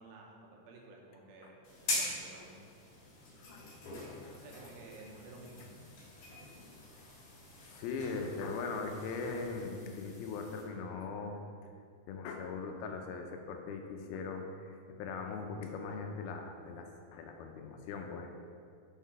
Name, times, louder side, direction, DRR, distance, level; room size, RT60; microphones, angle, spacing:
voice 1, 0.0-1.5 1.8-2.6 4.3-5.7, right 2 dB, 80° right, -1 dB, 2.6 m, -53 dB
sound 1, 1.6-10.6, left 2 dB, 55° left, 2.8 m, -43 dB
voice 2, 3.4-4.4 7.6-11.4 12.1-18.3, left 4 dB, 85° left, 4 dB, 2.6 m, -40 dB
6.3 x 5.6 x 4.7 m, 2.3 s
omnidirectional pair, 4.4 m